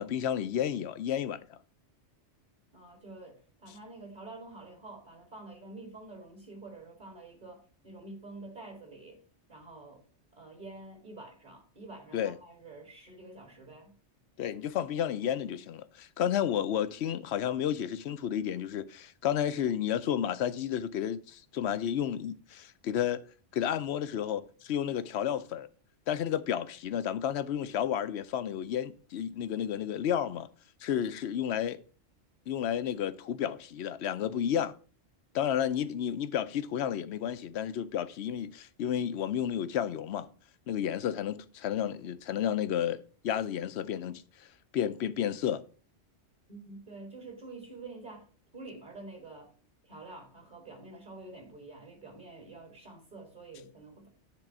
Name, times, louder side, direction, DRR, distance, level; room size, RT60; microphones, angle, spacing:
voice 1, 0.0-1.6 12.1-12.3 14.4-23.2 23.5-25.7 26.1-30.5 30.8-31.8 32.5-34.7 35.3-40.3 40.7-44.2 44.7-45.6, left 9 dB, 70° left, 0.9 m, -31 dB
voice 2, 2.7-9.2 9.5-10.0 10.3-14.0 46.5-48.3 48.5-49.5 49.8-54.1, right 2 dB, 40° right, 2.5 m, -48 dB
9.9 x 3.8 x 5.9 m
omnidirectional pair, 1.2 m